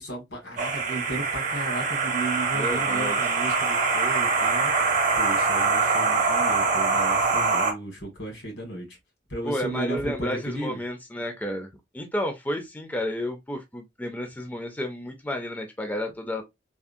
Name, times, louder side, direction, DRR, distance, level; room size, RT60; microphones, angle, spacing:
voice 1, 0.0-4.7 5.1-9.0 9.3-10.8, right 2 dB, 80° left, 1.7 m, -34 dB
sound 1, 0.6-7.7, right 4 dB, 45° right, 0.8 m, -24 dB
voice 2, 2.5-3.3 9.4-11.7 11.9-16.4, left 1 dB, 10° left, 0.4 m, -31 dB
3.5 x 2.0 x 2.5 m
head